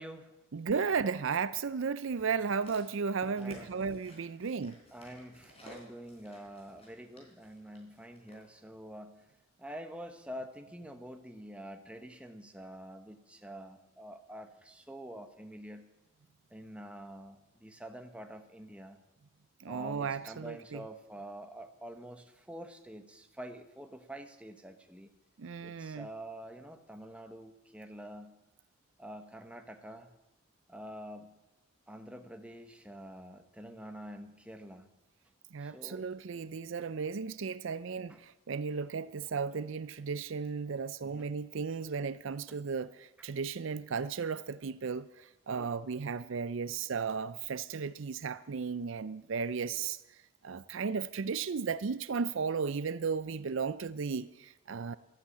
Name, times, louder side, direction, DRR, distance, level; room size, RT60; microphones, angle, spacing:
voice 1, 0.0-0.3 3.4-3.9 4.9-9.2 9.6-15.9 16.5-19.0 19.7-25.1 25.6-28.4 29.0-30.1 30.7-31.4 31.9-34.9 35.6-36.1 38.1-38.2 41.0-41.3 45.5-45.7, equal, 5° right, 1.0 m, -47 dB
voice 2, 0.5-4.8 19.6-20.8 25.4-26.1 35.5-50.0 50.4-55.0, right 5 dB, 65° right, 0.5 m, -35 dB
sound 1, 2.1-8.4 9.2-9.3, equal, 30° left, 4.3 m, -55 dB
13.0 x 12.0 x 8.5 m
head